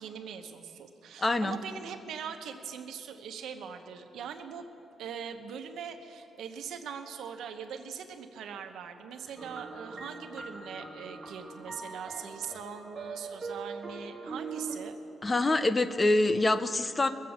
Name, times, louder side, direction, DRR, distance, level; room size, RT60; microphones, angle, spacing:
voice 1, 0.0-4.6 5.0-15.0, right 7 dB, 80° right, 6 dB, 1.1 m, -41 dB
voice 2, 1.2-1.6 15.2-17.1, left 2 dB, 20° left, 12 dB, 0.6 m, -25 dB
sound 1, 9.4-14.8, right 4 dB, 20° right, 1.4 m, -41 dB
21.5 x 7.5 x 7.3 m, 2.8 s
cardioid pair, 125°, 0 cm